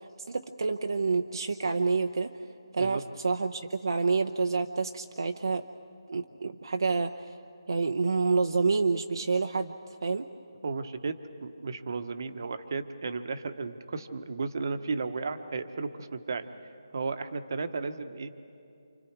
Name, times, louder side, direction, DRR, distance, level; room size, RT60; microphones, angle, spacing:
voice 1, 0.2-2.3 2.7-5.6 6.1-7.3 7.7-9.7 10.0-10.3, right 4 dB, 60° right, 5 dB, 0.8 m, -28 dB
voice 2, 10.6-16.5 16.9-18.3, right 4 dB, 45° right, 9 dB, 1.2 m, -34 dB
28.5 x 26.5 x 4.7 m, 2.6 s
figure-of-eight pair, 170°, 3 cm